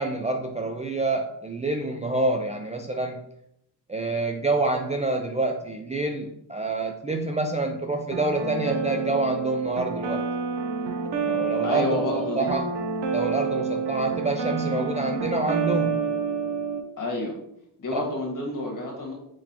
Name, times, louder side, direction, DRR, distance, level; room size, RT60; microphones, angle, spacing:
voice 1, 0.0-3.2 3.9-10.2 11.2-12.7 13.1-16.1 17.9-18.1, right 2 dB, 20° right, 3 dB, 0.3 m, -27 dB
sound 1, 8.1-16.8, right 5 dB, 80° right, 0.8 m, -28 dB
voice 2, 11.6-12.6 17.0-17.4 17.8-19.1, left 2 dB, 50° left, 0 dB, 1.6 m, -29 dB
4.5 x 3.9 x 2.9 m, 0.77 s
cardioid pair, 80°, 41 cm